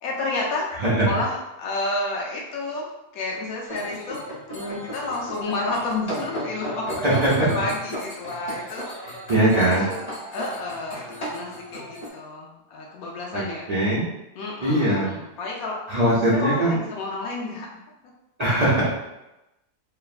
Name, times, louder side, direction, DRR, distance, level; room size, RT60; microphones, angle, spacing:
voice 1, 0.0-4.3 4.5-7.1 7.3-8.8 9.5-13.6 14.4-17.7, left 2 dB, 70° left, -2 dB, 1.0 m, -31 dB
voice 2, 0.8-1.1 7.0-7.5 9.3-9.9 13.3-13.4 13.7-14.1 14.6-15.1 15.9-16.7 18.4-19.0, right 1 dB, 85° right, -9 dB, 0.3 m, -20 dB
sound 1, 3.7-12.1, equal, 30° left, 0.8 m, -35 dB
3.0 x 2.1 x 2.4 m, 0.94 s
omnidirectional pair, 1.7 m